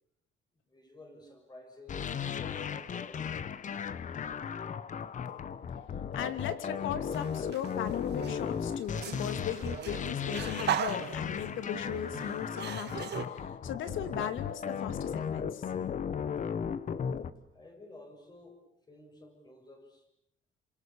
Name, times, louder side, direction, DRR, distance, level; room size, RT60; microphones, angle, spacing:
voice 1, 0.7-3.5 17.5-20.1, left 2 dB, 20° left, 4 dB, 7.0 m, -53 dB
sound 1, 1.9-17.3, left 7 dB, 40° left, 1.1 m, -36 dB
voice 2, 6.1-15.6, left 8 dB, 75° left, 9 dB, 2.8 m, -38 dB
sound 2, 7.1-7.7 8.1-13.2, right 10 dB, 55° right, 1.8 m, -37 dB
29.0 x 26.5 x 7.2 m, 0.75 s
cardioid pair, 145°, 20 cm